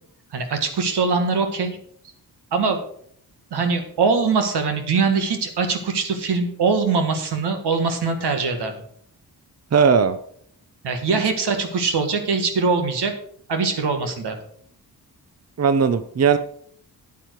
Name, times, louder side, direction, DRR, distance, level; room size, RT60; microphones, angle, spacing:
voice 1, 0.3-1.8 2.5-2.8 3.5-8.7 10.8-13.1 13.5-14.4, right 4 dB, 85° right, 6 dB, 1.8 m, -22 dB
voice 2, 9.7-10.2 11.1-11.2 15.6-16.4, right 6 dB, 40° right, 12 dB, 0.7 m, -18 dB
9.3 x 8.9 x 4.7 m, 0.63 s
cardioid pair, 75°, 39 cm